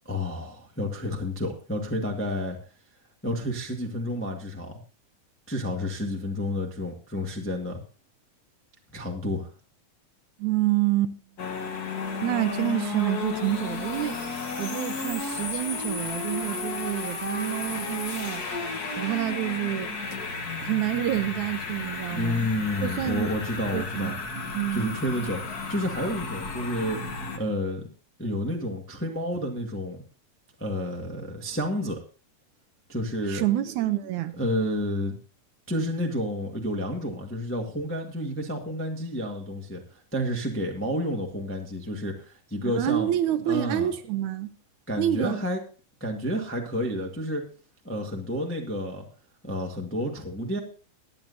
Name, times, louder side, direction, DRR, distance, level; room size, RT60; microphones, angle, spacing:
voice 1, 0.0-2.6 3.2-4.8 5.5-7.8 8.9-9.5 22.1-24.1 24.7-27.9 28.2-30.0 30.6-32.0 32.9-33.4 34.4-35.2 35.7-43.1 43.4-43.9 44.9-45.6 46.0-47.4 47.8-49.0 49.4-50.6, left 1 dB, 10° left, 0.6 m, -30 dB
voice 2, 10.4-11.2 11.7-11.9 12.2-14.2 14.6-18.4 19.0-20.0 20.6-22.5 22.8-23.3 23.7-24.2 24.5-24.9 33.3-34.4 42.6-44.5 45.0-45.4, right 13 dB, 75° right, 1.9 m, -28 dB
sound 1, 11.4-27.4, left 4 dB, 45° left, 1.3 m, -33 dB
22.5 x 8.7 x 2.7 m
omnidirectional pair, 3.7 m